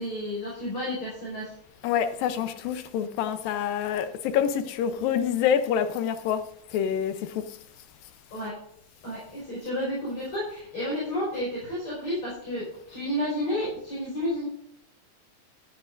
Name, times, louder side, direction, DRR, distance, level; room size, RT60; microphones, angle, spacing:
voice 1, 0.0-1.5 8.3-8.6 9.0-14.5, left 1 dB, 40° left, 5.8 m, -31 dB
voice 2, 1.8-6.4 6.7-7.1, left 8 dB, 85° left, 2.6 m, -26 dB
12.5 x 12.0 x 2.6 m
omnidirectional pair, 4.0 m